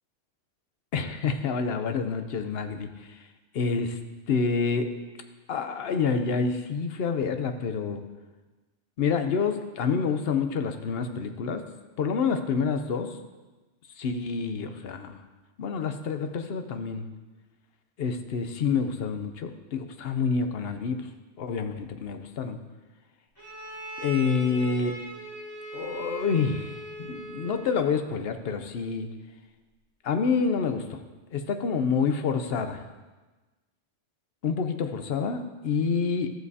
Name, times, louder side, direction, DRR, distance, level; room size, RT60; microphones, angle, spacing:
voice 1, 0.9-3.2 3.5-4.0 4.3-4.9 5.5-8.0 9.0-11.6 12.0-13.2 14.0-15.2 15.6-17.1 18.0-21.1 21.4-22.6 24.0-25.0 25.7-29.1 30.0-31.0 31.3-32.8 34.4-36.3, left 5 dB, 60° left, 7 dB, 0.8 m, -28 dB
Bowed string instrument, 23.4-28.0, right 1 dB, 15° left, 3.6 m, -40 dB
13.0 x 7.9 x 2.7 m, 1.2 s
omnidirectional pair, 1.3 m